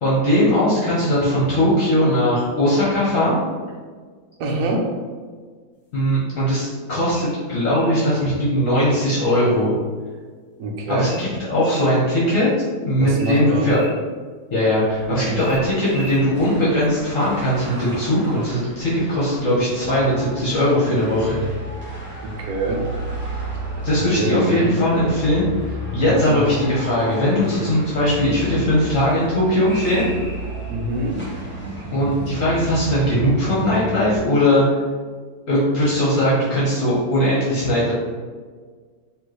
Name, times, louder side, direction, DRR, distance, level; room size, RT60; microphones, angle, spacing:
voice 1, 0.0-3.4 5.9-9.7 10.9-12.5 12.8-13.8 14.5-21.4 23.8-30.1 31.9-34.6 35.5-37.9, equal, 55° left, -7 dB, 1.3 m, -19 dB
voice 2, 4.4-4.9 10.6-11.1 13.0-13.7 15.1-15.4 22.2-22.8 24.2-24.7 26.1-26.4 30.7-31.2, right 2 dB, 65° right, 1 dB, 0.9 m, -25 dB
sound 1, 7.1-8.0 8.7-9.5 11.1-11.9 13.2-13.9 15.4-16.3, left 1 dB, 30° left, 1.3 m, -38 dB
sound 2, 14.9-33.9, right 1 dB, 10° left, 1.1 m, -37 dB
sound 3, 19.8-34.2, equal, 75° left, 1.1 m, -33 dB
4.3 x 3.0 x 3.2 m, 1.5 s
omnidirectional pair, 1.8 m